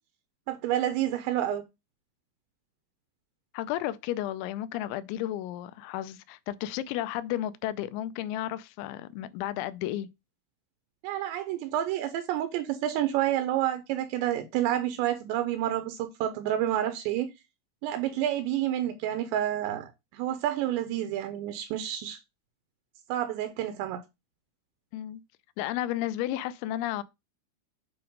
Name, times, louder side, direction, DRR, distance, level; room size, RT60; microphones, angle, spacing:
voice 1, 0.5-1.6 11.0-17.3 17.8-22.2 23.1-24.0, right 12 dB, 80° right, 2.8 m, -29 dB
voice 2, 3.5-10.1 24.9-25.2 25.6-27.0, left 13 dB, 90° left, 2.9 m, -33 dB
8.5 x 2.9 x 5.1 m
omnidirectional pair, 5.2 m